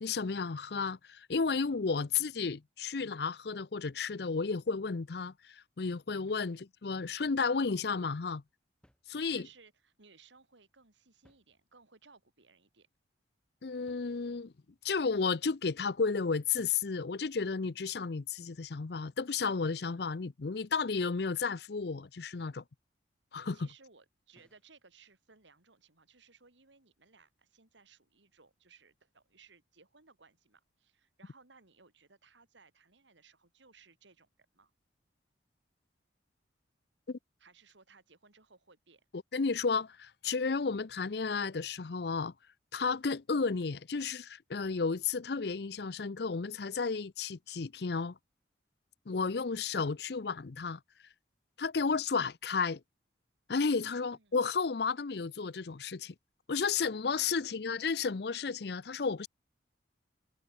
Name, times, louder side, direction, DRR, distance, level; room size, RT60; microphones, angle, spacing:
voice 1, 0.0-8.4 9.1-9.5 13.6-14.5 14.8-22.6 23.3-23.7 37.1-37.2 39.3-42.3 42.7-48.2 49.1-50.8 51.6-52.8 53.5-56.1 56.5-59.3, left 5 dB, 60° left, 0.6 m, -33 dB
sound 1, 8.8-9.6 11.0-12.1 13.9-14.6 16.5-17.0 19.6-20.0 22.4-22.7 24.3-24.7, equal, 5° left, 4.4 m, -68 dB
voice 2, 9.3-12.9 23.5-34.7 37.4-39.1 53.8-54.4 57.1-57.6, right 4 dB, 80° right, 3.1 m, -62 dB
head